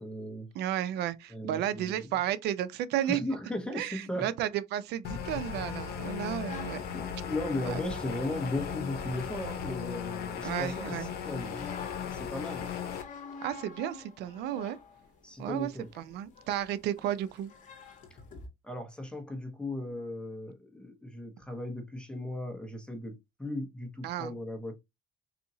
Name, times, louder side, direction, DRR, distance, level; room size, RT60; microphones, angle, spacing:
voice 1, 0.0-0.5 1.3-2.1 3.1-4.3 6.9-11.7 12.1-12.7 15.2-15.9 18.6-24.7, left 1 dB, 5° left, 1.1 m, -37 dB
voice 2, 0.5-3.2 3.7-6.8 7.7-7.8 10.4-11.1 13.4-14.8 15.4-17.5 24.0-24.3, right 11 dB, 80° right, 0.5 m, -33 dB
sound 1, 5.0-13.0, left 8 dB, 70° left, 0.8 m, -37 dB
sound 2, 6.5-10.5 11.3-18.5, left 5 dB, 50° left, 1.1 m, -48 dB
4.1 x 2.8 x 2.7 m
cardioid pair, 110°, 17 cm